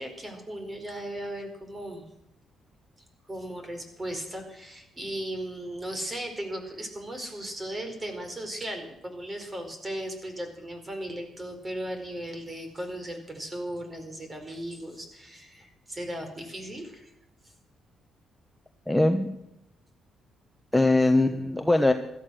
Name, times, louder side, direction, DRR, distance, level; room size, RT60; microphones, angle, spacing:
voice 1, 0.0-2.0 3.3-17.1, right 1 dB, 25° right, 6 dB, 4.7 m, -37 dB
voice 2, 18.9-19.3 20.7-21.9, left 2 dB, 5° left, 5 dB, 1.2 m, -21 dB
17.0 x 13.0 x 6.5 m, 0.87 s
cardioid pair, 90°, 0 cm